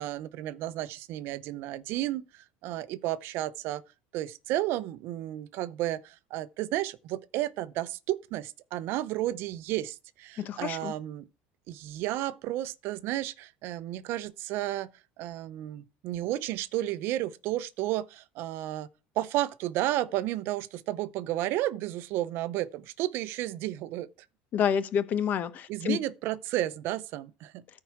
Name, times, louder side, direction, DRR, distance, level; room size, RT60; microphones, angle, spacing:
voice 1, 0.0-3.8 4.1-11.3 11.7-14.9 15.2-18.9 19.2-24.1 25.7-27.6, right 14 dB, 60° right, 0.7 m, -32 dB
voice 2, 10.4-10.9 24.5-26.0, left 8 dB, 40° left, 1.0 m, -28 dB
13.5 x 4.8 x 5.8 m
cardioid pair, 150°, 4 cm